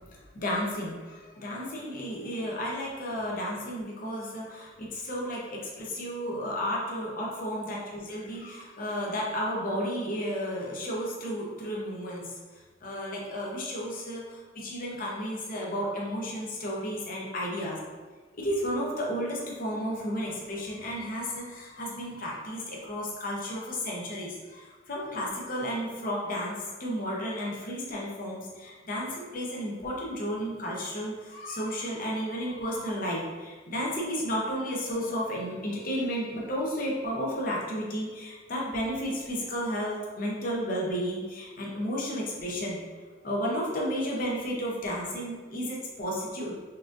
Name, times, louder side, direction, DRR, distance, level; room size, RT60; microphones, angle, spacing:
voice 1, 0.3-12.3 12.8-17.8 18.4-42.8 43.2-46.5, equal, 45° left, -4 dB, 0.8 m, -33 dB
5.6 x 2.6 x 2.5 m, 1.4 s
head